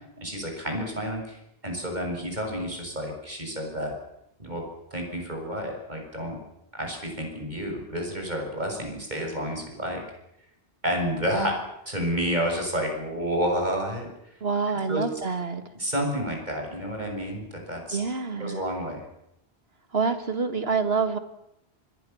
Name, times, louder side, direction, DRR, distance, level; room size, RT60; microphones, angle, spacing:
voice 1, 0.2-4.0 4.4-4.6 4.9-6.4 6.7-10.0 10.8-14.4 14.9-15.2 15.8-18.0 18.4-19.0, equal, 40° right, 2 dB, 7.5 m, -30 dB
voice 2, 14.4-15.6 17.9-18.6 19.9-21.2, right 5 dB, 65° right, 10 dB, 2.3 m, -27 dB
27.0 x 21.0 x 7.2 m, 0.83 s
omnidirectional pair, 1.1 m